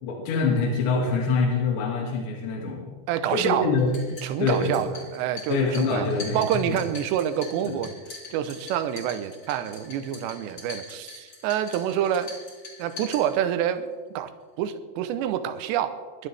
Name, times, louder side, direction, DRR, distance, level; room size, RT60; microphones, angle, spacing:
voice 1, 0.0-2.9 3.3-3.9 4.4-4.8 5.5-6.4 6.7-6.8 7.6-7.8, left 4 dB, 65° left, -1 dB, 4.3 m, -25 dB
voice 2, 3.1-3.7 4.2-6.0 6.3-7.9 8.3-12.3 12.8-14.3 14.6-16.3, right 10 dB, 80° right, 9 dB, 2.7 m, -27 dB
sound 1, 3.8-13.8, left 4 dB, 30° left, 4.1 m, -43 dB
24.5 x 12.5 x 3.5 m, 1.4 s
omnidirectional pair, 5.8 m